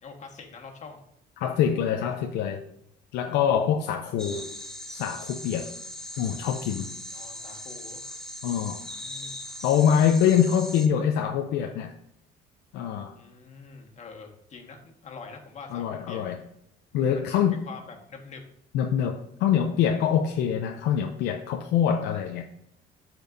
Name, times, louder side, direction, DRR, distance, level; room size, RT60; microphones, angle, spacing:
voice 1, 0.0-1.0 7.1-8.0 8.8-9.4 13.1-16.3 17.1-18.4, left 4 dB, 45° left, 2 dB, 1.5 m, -45 dB
voice 2, 1.4-2.6 3.1-4.5 4.9-5.7 6.2-6.9 8.4-8.8 9.6-11.9 12.7-13.1 15.7-16.4 16.9-17.6 18.7-22.4, left 8 dB, 85° left, 4 dB, 0.6 m, -24 dB
sound 1, 4.2-10.9, left 1 dB, 5° left, 0.8 m, -39 dB
12.5 x 4.5 x 2.6 m, 0.75 s
cardioid pair, 110°, 17 cm